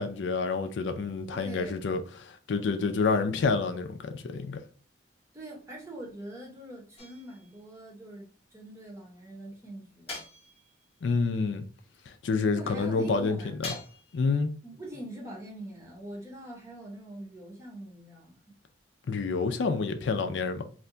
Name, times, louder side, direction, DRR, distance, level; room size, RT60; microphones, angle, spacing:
voice 1, 0.0-4.6 11.0-11.6 12.2-13.5 14.1-14.5 19.1-20.6, left 4 dB, 85° left, 0.4 m, -28 dB
voice 2, 1.3-1.9 5.3-10.2 12.5-13.7 14.6-18.5, right 1 dB, 15° right, 0.7 m, -43 dB
sound 1, 7.0-7.6 10.1-10.9 13.6-14.3, left 3 dB, 35° left, 0.8 m, -42 dB
2.5 x 2.2 x 3.7 m
head